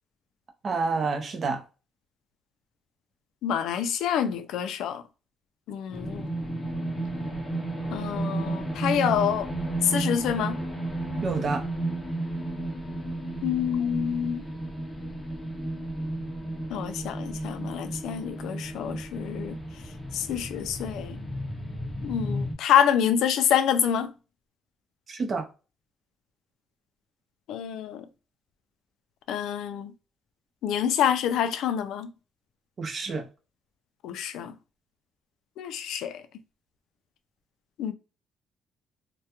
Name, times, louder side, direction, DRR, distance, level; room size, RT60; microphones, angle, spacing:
voice 1, 0.6-1.6 11.2-11.6 25.1-25.5 32.8-33.2, right 4 dB, 35° right, 0.5 m, -28 dB
voice 2, 3.4-5.0 5.7-6.3 7.9-9.5 9.8-10.6 13.4-14.4 16.7-19.6 20.1-21.2 22.0-24.1 27.5-28.0 29.3-29.9 30.6-32.1 34.0-34.5 35.6-36.2 37.8-37.9, left 9 dB, 80° left, 0.3 m, -27 dB
sound 1, 5.9-22.5, right 2 dB, 15° left, 0.6 m, -33 dB
2.2 x 2.1 x 2.8 m
cardioid pair, 165°, 0 cm